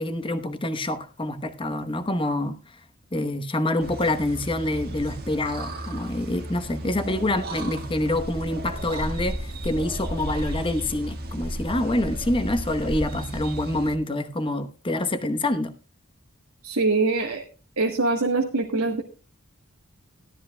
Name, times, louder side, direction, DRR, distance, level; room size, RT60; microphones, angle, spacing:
voice 1, 0.0-2.6 3.1-15.7, left 1 dB, 25° left, 1.0 m, -26 dB
sound 1, 3.8-14.0, right 1 dB, 50° right, 1.5 m, -34 dB
voice 2, 16.6-17.4 17.8-19.0, right 3 dB, 85° right, 1.3 m, -23 dB
17.0 x 12.5 x 2.2 m
head